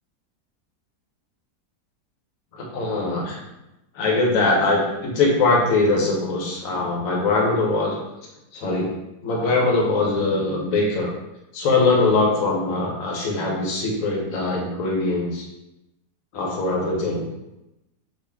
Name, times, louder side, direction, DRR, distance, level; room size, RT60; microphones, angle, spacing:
voice 1, 2.5-3.4 3.9-7.9 8.5-8.9 9.2-11.1 11.5-15.4 16.3-17.3, left 3 dB, 60° left, -1 dB, 1.1 m, -22 dB
3.8 x 2.5 x 3.4 m, 0.93 s
omnidirectional pair, 1.8 m